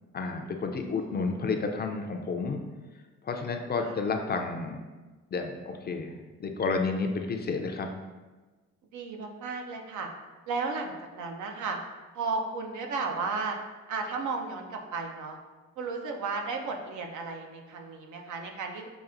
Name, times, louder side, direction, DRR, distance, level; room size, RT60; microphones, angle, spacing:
voice 1, 0.1-2.6 3.2-4.8 5.3-7.9, left 4 dB, 35° left, 4 dB, 0.4 m, -31 dB
voice 2, 0.9-1.4 3.8-4.0 8.9-10.1 10.5-11.8 12.1-13.6 13.9-15.4 15.8-18.9, right 4 dB, 75° right, 3 dB, 0.6 m, -34 dB
5.8 x 2.4 x 2.5 m, 1.2 s
cardioid pair, 90°, 30 cm